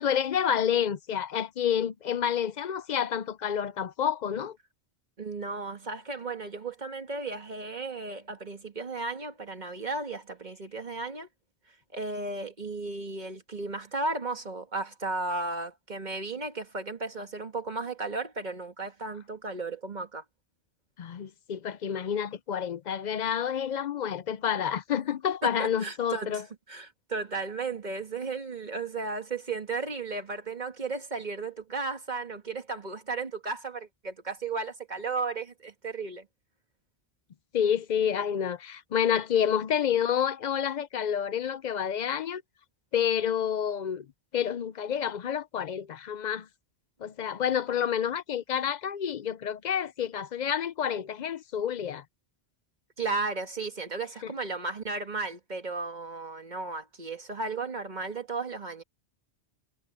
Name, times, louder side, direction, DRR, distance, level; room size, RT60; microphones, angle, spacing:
voice 1, 0.0-4.6 21.0-26.4 37.5-42.4 42.9-44.1 44.3-46.5 47.0-52.0 54.2-54.3, left 8 dB, 55° left, 0.6 m, -29 dB
voice 2, 5.2-11.3 11.9-20.2 25.4-26.4 26.7-36.3 53.0-58.8, right 3 dB, 45° right, 1.8 m, -34 dB
omnidirectional pair, 1.1 m